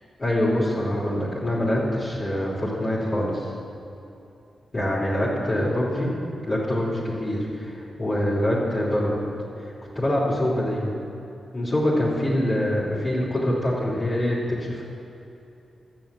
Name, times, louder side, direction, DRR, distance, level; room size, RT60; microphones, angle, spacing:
voice 1, 0.2-3.5 4.7-6.1 6.5-9.3 9.6-11.0 11.5-14.8, left 1 dB, 40° left, -9 dB, 3.3 m, -25 dB
13.0 x 6.5 x 8.5 m, 2.8 s
cardioid pair, 55°, 0 cm